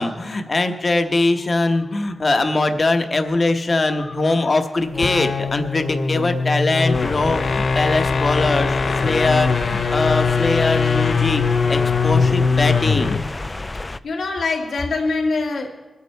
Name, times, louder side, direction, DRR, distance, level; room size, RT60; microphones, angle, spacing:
voice 1, 0.0-11.4 11.7-13.2, left 2 dB, 35° left, 7 dB, 0.9 m, -21 dB
sound 1, 4.8-13.3, left 5 dB, 65° left, 0.7 m, -21 dB
sound 2, 6.9-14.0, left 2 dB, 20° left, 0.3 m, -31 dB
voice 2, 13.7-15.7, left 3 dB, 85° left, 1 dB, 1.9 m, -24 dB
22.0 x 8.3 x 4.5 m, 1.2 s
wide cardioid pair, 140°, 0 cm